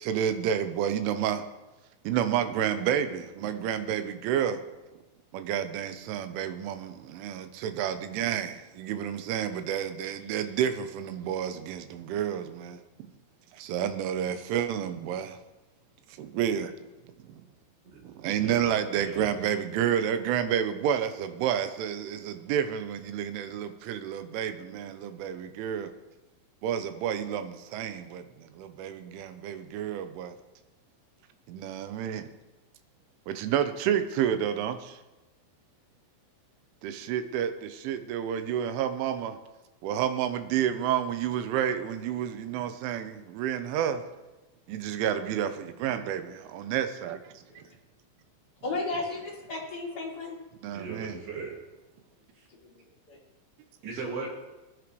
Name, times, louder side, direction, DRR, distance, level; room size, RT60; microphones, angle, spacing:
voice 1, 0.0-1.4 2.1-4.6 5.3-8.5 8.8-12.7 13.7-15.3 16.2-16.7 18.2-25.9 26.6-28.2 28.8-30.3 31.5-32.2 33.4-34.8 36.8-37.5 37.8-39.3 39.8-44.0 44.7-45.5 45.8-46.2 46.5-47.2 50.6-51.2, right 9 dB, 85° right, 8 dB, 3.1 m, -29 dB
voice 2, 18.4-18.7 18.9-19.3 50.7-51.5 52.4-52.5 53.8-54.5, right 3 dB, 60° right, -2 dB, 4.0 m, -37 dB
voice 3, 48.6-50.4 52.6-52.7 53.1-53.2, left 3 dB, 25° left, -4 dB, 2.5 m, -34 dB
22.5 x 10.5 x 3.2 m, 1.1 s
omnidirectional pair, 5.9 m